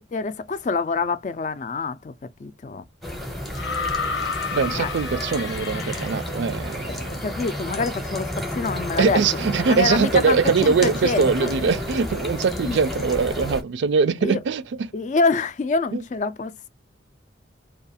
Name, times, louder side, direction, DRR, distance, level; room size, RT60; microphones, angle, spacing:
voice 1, 0.1-2.1 2.4-2.8 4.8-4.9 6.9-9.2 9.7-11.5 12.7-12.8 14.2-14.4 14.9-16.7, left 4 dB, 40° left, 0.3 m, -26 dB
sound 1, 3.0-13.6, equal, ahead, 0.6 m, -31 dB
sound 2, 3.5-6.6 7.8-7.9, left 5 dB, 80° left, 0.7 m, -30 dB
voice 2, 4.5-7.2 9.0-14.9 15.9-16.0, right 5 dB, 75° right, 0.4 m, -22 dB
2.4 x 2.3 x 2.6 m
head